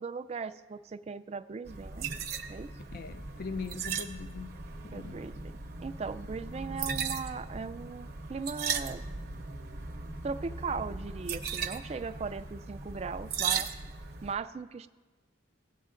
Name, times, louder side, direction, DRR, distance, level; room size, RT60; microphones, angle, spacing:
voice 1, 0.0-2.1 2.5-2.7 4.9-5.5 5.8-9.0 10.2-13.7 14.2-14.9, right 4 dB, 30° right, 0.3 m, -38 dB
sound 1, 1.7-14.3, right 6 dB, 50° right, 0.7 m, -37 dB
voice 2, 2.9-4.6 4.8-5.2, left 4 dB, 45° left, 0.4 m, -40 dB
17.0 x 8.1 x 2.5 m
head